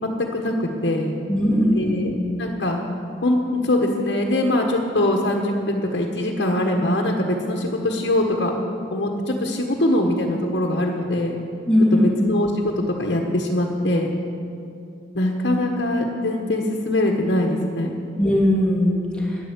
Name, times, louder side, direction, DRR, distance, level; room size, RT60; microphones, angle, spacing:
voice 1, 0.0-1.1 1.7-2.8 3.2-8.5 8.9-11.4 11.9-12.7 13.0-14.1 15.1-17.9, left 1 dB, 65° left, 0 dB, 1.3 m, -22 dB
voice 2, 1.3-2.1 11.7-12.1 18.2-19.3, left 1 dB, 5° left, -4 dB, 2.5 m, -19 dB
12.5 x 10.5 x 8.3 m, 2.7 s
head